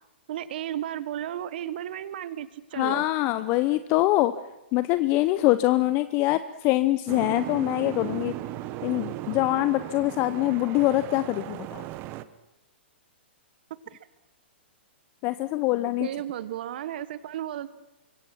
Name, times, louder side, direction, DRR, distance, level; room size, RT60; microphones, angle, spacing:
voice 1, 0.3-3.0 13.9-14.0 16.0-17.7, right 11 dB, 60° right, 14 dB, 1.4 m, -34 dB
voice 2, 2.7-4.3 4.7-8.3 8.8-11.8 15.2-16.1, left 17 dB, 35° left, 13 dB, 0.8 m, -24 dB
Boat Water vehicle, 7.1-12.2, right 15 dB, 35° right, 1.1 m, -36 dB
25.5 x 23.0 x 6.1 m, 0.94 s
hypercardioid pair, 120°, 6 cm